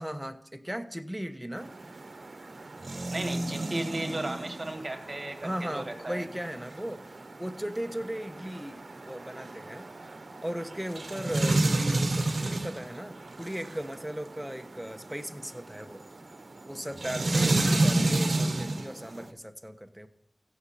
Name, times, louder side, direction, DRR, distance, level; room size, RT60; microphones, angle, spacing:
voice 1, 0.0-1.7 5.4-9.9 10.4-16.0 16.7-20.1, equal, 5° right, 8 dB, 1.1 m, -37 dB
sound 1, 1.6-19.3, right 2 dB, 65° right, 0.9 m, -31 dB
voice 2, 3.1-6.2, right 1 dB, 40° right, 7 dB, 1.8 m, -35 dB
15.5 x 6.6 x 4.2 m, 0.75 s
cardioid pair, 40°, 0 cm